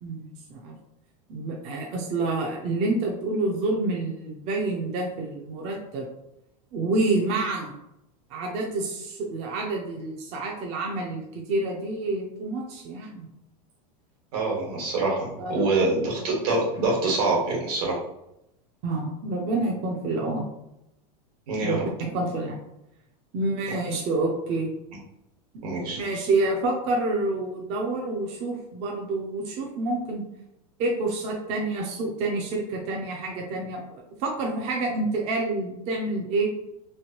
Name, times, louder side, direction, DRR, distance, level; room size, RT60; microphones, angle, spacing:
voice 1, 0.0-0.7 1.3-6.1 6.7-7.7 8.3-13.3 15.4-15.8 18.8-20.5 21.6-22.6 23.3-24.7 26.0-30.2 30.8-36.5, right 2 dB, 35° right, 0 dB, 0.5 m, -28 dB
voice 2, 14.3-18.0 21.5-21.8 25.6-26.0, right 2 dB, 75° right, -2 dB, 1.4 m, -25 dB
3.1 x 2.5 x 2.8 m, 0.82 s
supercardioid pair, 160°, 20 cm